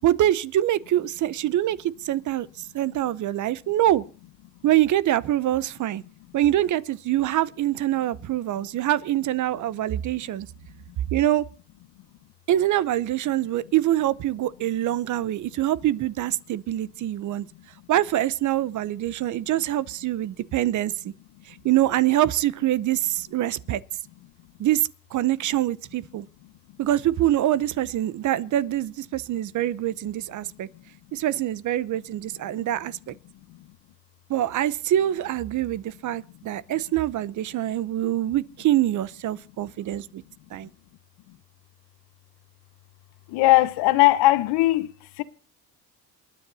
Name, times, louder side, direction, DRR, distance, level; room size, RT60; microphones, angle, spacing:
voice 1, 0.0-1.8 2.0-2.5 2.7-4.0 4.6-6.0 6.3-10.5 11.1-11.4 12.5-17.4 17.9-20.9 21.6-23.8 24.6-24.8 25.1-26.2 26.8-30.7 31.1-33.1 34.3-40.2 40.5-40.7, right 13 dB, 45° right, 0.8 m, -24 dB
voice 2, 43.3-44.9 45.2-45.3, left 17 dB, 70° left, 1.3 m, -19 dB
28.5 x 9.9 x 4.1 m
cardioid pair, 115°, 41 cm